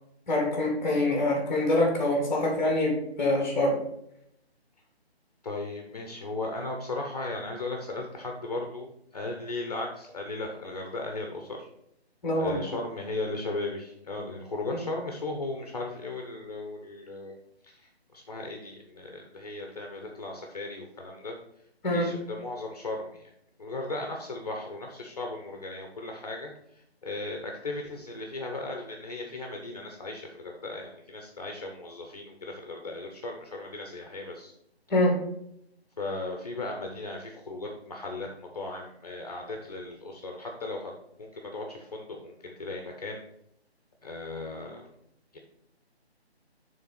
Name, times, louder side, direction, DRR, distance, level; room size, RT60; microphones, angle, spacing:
voice 1, 0.3-3.8 12.2-12.7 14.7-14.9 21.8-22.1 34.9-35.2, left 1 dB, 5° left, 0 dB, 1.2 m, -25 dB
voice 2, 5.4-8.9 9.1-11.7 12.4-17.4 17.6-17.8 18.1-21.4 21.9-23.2 23.6-26.5 27.0-34.5 36.0-40.9 41.2-43.2 44.0-44.8 45.3-45.4, left 2 dB, 35° left, 2 dB, 0.8 m, -36 dB
6.7 x 3.6 x 5.7 m, 0.75 s
figure-of-eight pair, 155°, 32 cm